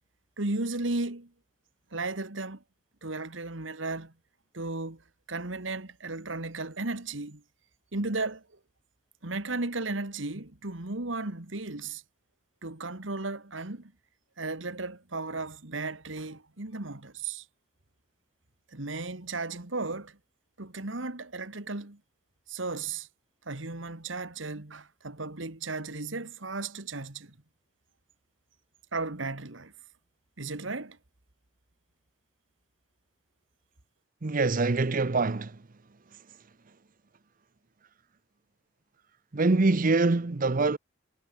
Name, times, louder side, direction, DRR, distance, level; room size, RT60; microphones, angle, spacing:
voice 1, 0.4-1.3 1.9-2.6 3.0-4.1 4.5-5.0 5.3-7.4 7.9-8.4 9.2-12.0 12.6-13.9 14.4-17.4 18.7-20.2 20.6-22.0 22.5-23.1 23.5-27.3 28.9-29.7 30.4-31.0, right 3 dB, 75° right, 2.2 m, -35 dB
voice 2, 34.2-35.6 39.3-40.8, right 3 dB, 45° right, 0.8 m, -24 dB
head